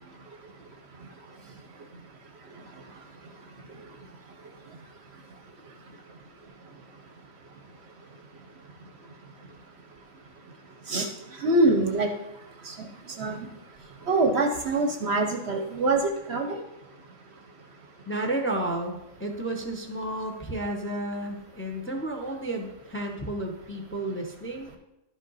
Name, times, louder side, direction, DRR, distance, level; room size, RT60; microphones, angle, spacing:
voice 1, 11.4-12.1 12.7-12.8 13.2-13.5 14.1-16.0 16.3-16.6, right 2 dB, 60° right, 5 dB, 0.9 m, -24 dB
voice 2, 18.1-24.7, right 1 dB, 10° left, 2 dB, 0.7 m, -32 dB
11.5 x 5.2 x 4.0 m, 0.93 s
omnidirectional pair, 1.4 m